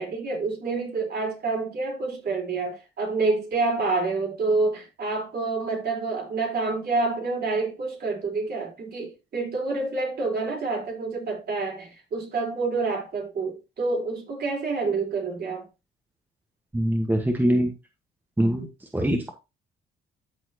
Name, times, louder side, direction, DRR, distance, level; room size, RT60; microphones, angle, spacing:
voice 1, 0.0-15.7, right 3 dB, 55° right, 4.3 m, -28 dB
voice 2, 16.7-17.7 18.4-18.7 18.9-19.3, right 1 dB, 10° right, 1.4 m, -23 dB
13.0 x 4.4 x 2.9 m
cardioid pair, 90°, 20 cm